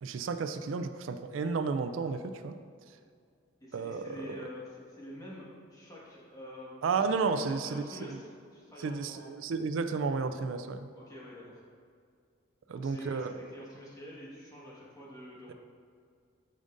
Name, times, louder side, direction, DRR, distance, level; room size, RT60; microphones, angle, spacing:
voice 1, 0.0-2.5 3.7-4.4 6.8-8.2 8.8-10.9 12.7-13.3, right 4 dB, 75° right, 9 dB, 0.4 m, -32 dB
voice 2, 3.6-9.4 11.0-11.6 12.7-15.5, left 1 dB, 20° left, -5 dB, 1.5 m, -47 dB
9.9 x 5.2 x 2.5 m, 2.2 s
head